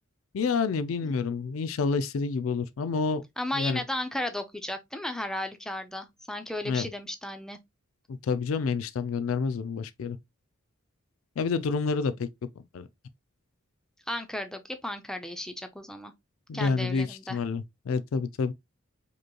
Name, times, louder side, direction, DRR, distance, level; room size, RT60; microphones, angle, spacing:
voice 1, 0.3-3.2 3.5-3.8 6.7-6.9 8.2-10.2 11.4-12.3 12.7-12.9 16.5-18.5, left 4 dB, 75° left, 0.4 m, -28 dB
voice 2, 3.4-7.6 14.1-16.1 16.5-17.4, left 1 dB, 5° left, 0.4 m, -34 dB
5.0 x 3.0 x 2.2 m
head